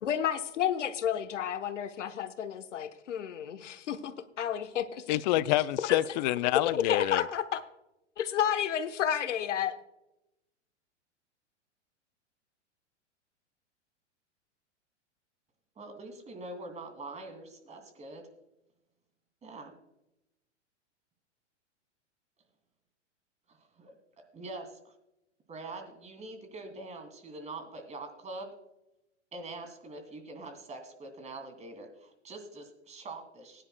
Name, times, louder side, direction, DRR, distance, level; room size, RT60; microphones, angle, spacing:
voice 1, 0.0-5.0 5.9-6.0 6.7-7.4 8.3-9.8, left 9 dB, 80° left, 1.1 m, -31 dB
voice 2, 5.1-7.3, left 15 dB, 40° left, 0.5 m, -27 dB
voice 3, 15.8-18.3 19.4-19.7 23.5-23.9 24.3-24.9 25.5-28.5 29.3-33.6, right 2 dB, 20° right, 2.5 m, -44 dB
19.5 x 10.0 x 2.2 m
hypercardioid pair, 110°, 36 cm